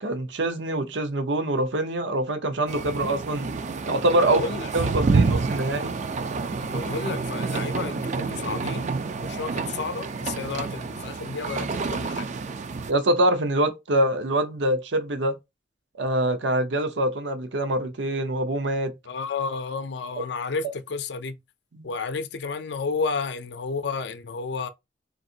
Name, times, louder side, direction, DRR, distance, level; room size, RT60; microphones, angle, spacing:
voice 1, 0.0-3.6 3.9-4.4 4.7-6.0 12.9-15.3 16.0-18.9 21.7-21.9, right 1 dB, 75° right, 0.7 m, -24 dB
sound 1, 2.7-12.9, right 4 dB, 40° right, 0.4 m, -28 dB
voice 2, 4.2-4.7 6.6-12.3 19.1-21.4 21.8-24.7, left 4 dB, 65° left, 0.5 m, -32 dB
4.0 x 2.5 x 2.7 m
head